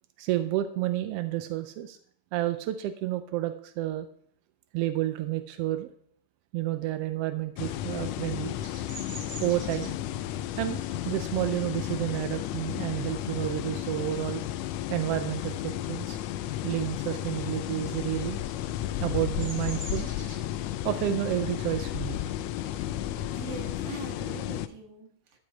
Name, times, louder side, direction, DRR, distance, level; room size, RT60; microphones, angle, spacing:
voice 1, 0.2-2.0 2.3-4.1 4.7-5.9 6.5-8.6 9.4-10.0 10.6-14.4 14.9-16.2 16.6-18.4 19.0-20.1 20.8-22.2, right 14 dB, 85° right, 9 dB, 1.3 m, -30 dB
sound 1, 7.6-24.7, left 12 dB, 80° left, 1.5 m, -33 dB
Bird vocalization bird call bird song, 8.6-13.8 14.2-14.6 14.9-16.1 16.4-23.7, right 2 dB, 20° right, 2.3 m, -48 dB
voice 2, 23.0-25.4, right 5 dB, 45° right, 2 dB, 2.1 m, -43 dB
12.5 x 6.3 x 4.6 m, 0.66 s
omnidirectional pair, 3.3 m